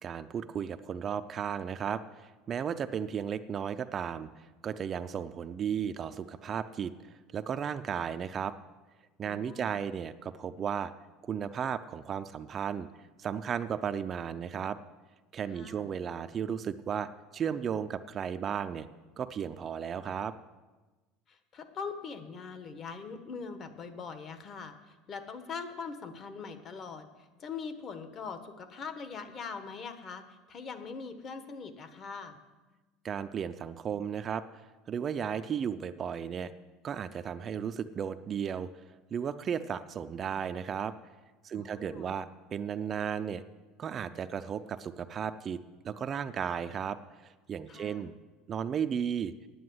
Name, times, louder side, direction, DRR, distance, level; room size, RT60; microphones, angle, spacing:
voice 1, 0.0-4.3 4.6-6.9 7.3-8.5 9.2-10.9 11.2-12.9 13.2-14.8 15.3-18.9 19.2-20.3 33.0-34.4 34.9-36.5 36.8-38.7 39.1-40.9 41.4-43.4 43.8-47.0 47.2-48.1 48.5-49.3, right 8 dB, 35° right, 11 dB, 0.4 m, -34 dB
voice 2, 9.2-9.8 15.5-15.9 21.3-27.1 27.4-32.4 41.5-42.1 47.7-48.1, left 5 dB, 35° left, 9 dB, 1.3 m, -42 dB
9.5 x 9.1 x 7.8 m, 1.2 s
supercardioid pair, 125°, 0 cm